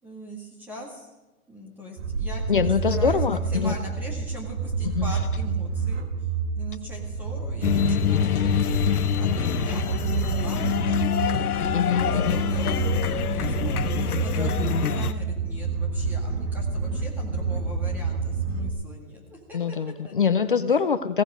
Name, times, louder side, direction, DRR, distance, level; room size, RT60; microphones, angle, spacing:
voice 1, 0.0-1.1 1.5-6.0 6.6-8.4 9.2-11.4 12.0-19.8 20.0-20.3, equal, 5° right, -2 dB, 2.1 m, -40 dB
sound 1, 2.0-18.7, right 4 dB, 50° right, 1.7 m, -28 dB
voice 2, 2.5-3.8 4.9-5.1 11.7-12.4 19.5-21.2, left 6 dB, 40° left, 13 dB, 0.5 m, -24 dB
sound 2, 7.6-15.1, left 9 dB, 85° left, 1.1 m, -26 dB
16.5 x 15.5 x 5.1 m, 1.1 s
hypercardioid pair, 170°, 44 cm